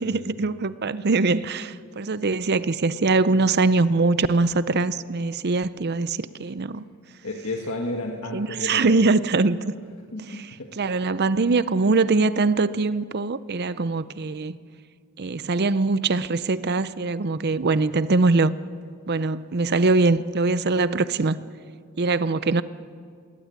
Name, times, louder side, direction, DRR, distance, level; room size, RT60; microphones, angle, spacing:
voice 1, 0.0-6.8 8.3-9.6 10.3-10.4 10.8-14.6 15.2-18.5 19.1-21.4 22.0-22.6, right 3 dB, 45° right, 0.6 m, -22 dB
voice 2, 7.2-9.0 10.1-10.7, left 2 dB, 65° left, 1.7 m, -32 dB
20.5 x 17.5 x 9.6 m
head